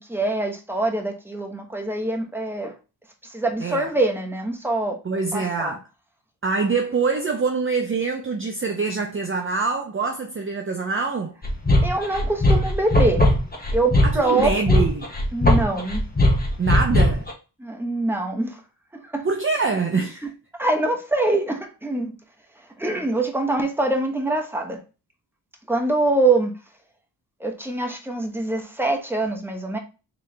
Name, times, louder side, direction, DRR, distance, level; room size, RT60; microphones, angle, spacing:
voice 1, 0.1-2.7 3.2-5.0 5.3-5.8 11.8-13.3 13.7-14.8 15.3-16.0 17.6-18.6 18.9-19.3 20.2-22.1 22.8-24.8 25.7-26.5 27.4-29.8, right 2 dB, 5° right, 1.0 m, -24 dB
voice 2, 5.0-5.8 6.4-11.3 14.0-15.0 16.6-17.3 19.2-20.2, right 4 dB, 30° right, 0.6 m, -24 dB
sound 1, 11.4-17.3, left 1 dB, 20° left, 1.1 m, -19 dB
4.1 x 3.2 x 3.2 m
wide cardioid pair, 90°, 42 cm